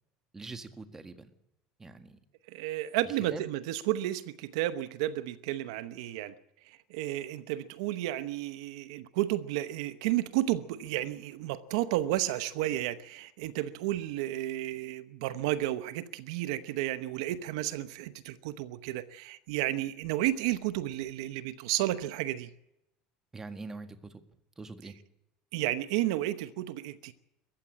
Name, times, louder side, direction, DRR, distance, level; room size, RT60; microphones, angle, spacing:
voice 1, 0.3-1.3 1.8-2.2 3.3-3.4 23.3-24.2 24.6-25.0, right 3 dB, 15° right, 1.8 m, -43 dB
voice 2, 2.5-6.3 6.6-22.5 25.5-27.1, right 14 dB, 85° right, 0.8 m, -32 dB
21.5 x 14.5 x 8.9 m
supercardioid pair, 115°, 3 cm